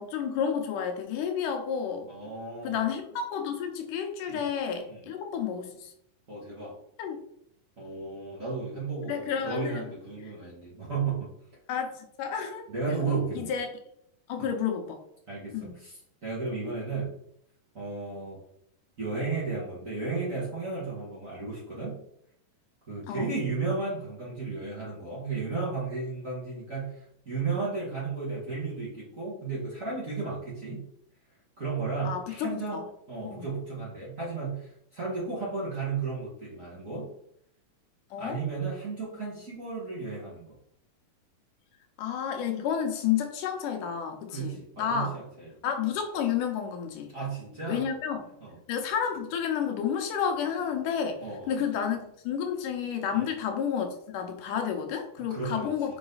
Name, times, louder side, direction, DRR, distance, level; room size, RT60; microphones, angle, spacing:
voice 1, 0.0-2.1 2.6-5.9 7.0-7.2 9.0-9.8 11.7-13.7 14.3-15.0 15.5-15.8 23.1-23.3 32.1-32.8 33.2-33.5 38.1-38.4 42.0-45.2 45.6-47.1 47.7-48.2 48.7-56.0, left 8 dB, 80° left, 4 dB, 2.4 m, -31 dB
voice 2, 2.1-2.8 4.3-4.5 4.9-5.1 6.3-6.8 7.8-11.3 12.7-13.5 14.4-14.5 15.3-17.1 17.7-18.4 19.0-22.0 22.9-30.8 31.6-37.1 38.2-40.5 44.3-45.5 47.1-47.9 48.4-48.6 51.2-51.6 53.1-53.3 55.3-55.7, right 4 dB, 30° right, -6 dB, 1.8 m, -34 dB
5.8 x 4.9 x 4.0 m, 0.71 s
omnidirectional pair, 3.7 m